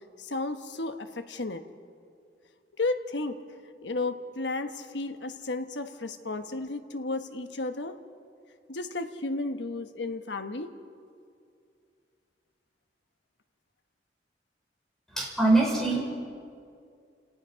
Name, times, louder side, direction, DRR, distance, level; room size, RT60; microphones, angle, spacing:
voice 1, 0.2-1.6 2.8-3.4 3.8-7.9 8.7-10.7, left 2 dB, 85° left, 8 dB, 1.2 m, -33 dB
voice 2, 15.1-16.0, right 2 dB, ahead, -4 dB, 5.0 m, -23 dB
29.5 x 18.0 x 5.7 m, 2.3 s
head